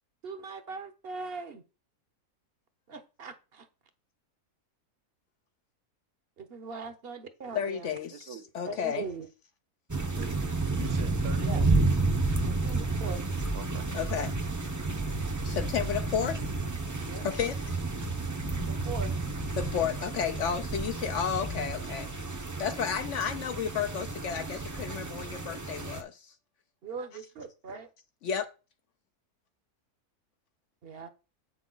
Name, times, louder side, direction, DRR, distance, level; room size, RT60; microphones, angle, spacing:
voice 1, 0.2-1.6 2.9-3.7 6.4-8.0 8.7-9.3 11.4-11.7 12.5-13.2 17.1-17.3 18.7-19.2 26.8-27.9 30.8-31.1, right 4 dB, 45° right, 1.0 m, -40 dB
voice 2, 7.5-9.0 13.9-14.3 15.4-16.4 17.2-17.8 19.6-22.1 22.4-26.3 28.2-28.5, left 7 dB, 65° left, 0.8 m, -32 dB
voice 3, 8.1-8.5 10.2-10.4 10.7-11.9 13.5-13.9, right 7 dB, 75° right, 1.5 m, -43 dB
sound 1, 9.9-26.0, right 3 dB, 15° right, 0.6 m, -31 dB
8.1 x 6.0 x 3.9 m
omnidirectional pair, 1.6 m